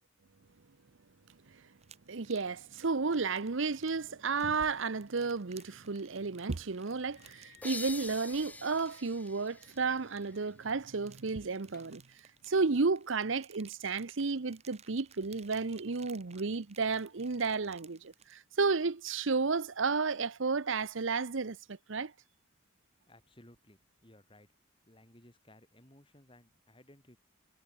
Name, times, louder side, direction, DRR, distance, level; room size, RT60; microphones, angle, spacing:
sound 1, 1.8-18.4, right 8 dB, 30° right, 2.5 m, -60 dB
voice 1, 2.1-12.0 12.5-22.1, right 4 dB, 70° right, 0.8 m, -32 dB
sound 2, 4.3-4.9 5.6-5.8 6.2-6.3 7.2-8.3 8.8-9.1 9.5-9.8 10.2-10.5 10.8-10.9 11.4-12.2, left 2 dB, 50° left, 1.6 m, -57 dB
sound 3, 7.6-11.0, left 2 dB, 10° left, 1.5 m, -46 dB
voice 2, 23.1-24.5 24.9-27.2, left 1 dB, 25° left, 3.1 m, -59 dB
head